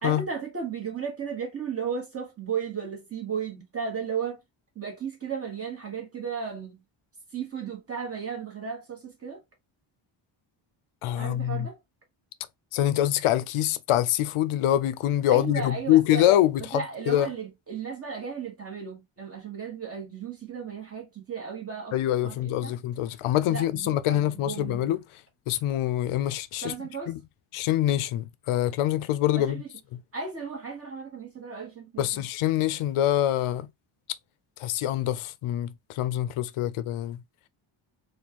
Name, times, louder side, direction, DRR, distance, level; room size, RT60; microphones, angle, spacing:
voice 1, 0.0-4.4 4.7-6.8 7.3-9.4 11.2-11.8 15.3-16.2 16.6-22.0 22.2-22.7 23.5-24.9 26.6-27.1 29.3-29.7 30.1-32.2, right 6 dB, 30° right, 1.6 m, -35 dB
voice 2, 11.0-11.7 12.7-17.3 21.9-25.2 25.5-26.7 27.1-27.2 27.5-29.6 32.0-33.7 34.6-37.2, left 12 dB, 85° left, 0.6 m, -25 dB
4.2 x 2.5 x 2.8 m
wide cardioid pair, 165°, 49 cm